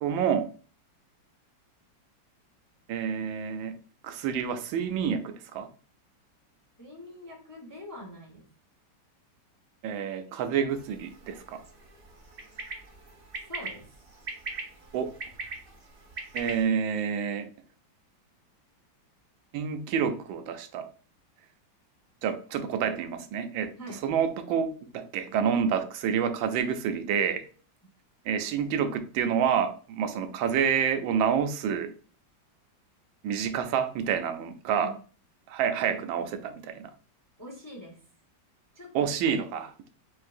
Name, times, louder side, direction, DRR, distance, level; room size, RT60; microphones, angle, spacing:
voice 1, 0.0-0.5 2.9-3.7 4.0-5.7 9.8-11.6 14.9-15.1 16.3-17.5 19.5-20.9 22.2-23.7 24.0-27.4 28.3-31.9 33.2-34.9 35.5-36.9 38.9-39.7, right 7 dB, 85° right, 1.4 m, -28 dB
voice 2, 6.8-8.5 13.5-13.9 23.8-24.0 34.8-35.0 37.4-38.0 38.7-39.4, equal, 15° left, 0.7 m, -44 dB
sound 1, 10.7-16.6, right 3 dB, 45° right, 0.8 m, -41 dB
4.5 x 3.9 x 2.5 m
omnidirectional pair, 2.0 m